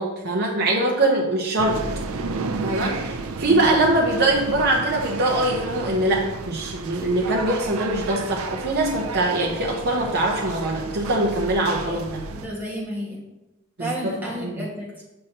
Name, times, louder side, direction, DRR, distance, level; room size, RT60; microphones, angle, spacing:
voice 1, 0.0-1.8 2.6-12.3 13.8-14.2 14.4-14.7, right 2 dB, 50° right, -2 dB, 0.8 m, -23 dB
sound 1, 1.6-12.5, right 3 dB, 85° right, 0.5 m, -32 dB
voice 2, 12.3-13.2 13.8-15.0, equal, 10° right, -6 dB, 1.6 m, -32 dB
6.5 x 5.7 x 2.8 m, 1.0 s
head